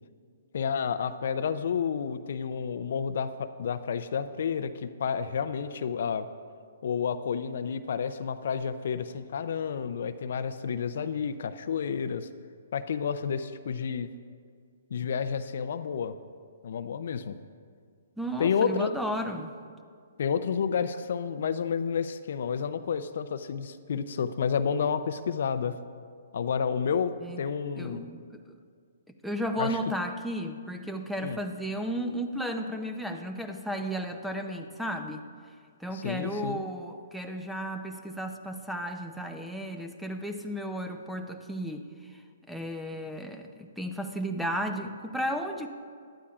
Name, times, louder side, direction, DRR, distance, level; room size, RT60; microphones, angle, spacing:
voice 1, 0.5-6.3 6.8-12.3 12.7-14.1 14.9-16.1 16.6-17.4 18.4-18.9 20.2-25.8 26.3-28.1 29.6-29.8 31.2-31.4 35.9-36.6, left 6 dB, 65° left, 11 dB, 0.5 m, -30 dB
voice 2, 18.2-19.6 27.2-27.5 27.8-28.6 29.2-35.2 35.8-45.7, equal, ahead, 5 dB, 0.6 m, -34 dB
18.0 x 11.5 x 2.4 m, 2.1 s
hypercardioid pair, 140°, 0 cm